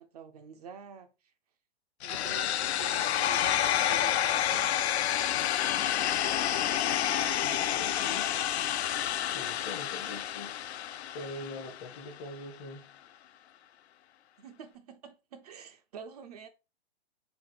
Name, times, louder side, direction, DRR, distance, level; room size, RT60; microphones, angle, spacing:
voice 1, 0.0-1.3 2.0-5.3 14.4-16.5, right 7 dB, 40° right, 0.4 m, -48 dB
sound 1, 2.0-12.0, left 11 dB, 80° left, 0.5 m, -29 dB
voice 2, 7.4-8.4 9.3-10.5 11.1-12.9, left 2 dB, 20° left, 0.6 m, -43 dB
4.0 x 3.8 x 3.2 m
hypercardioid pair, 140°, 33 cm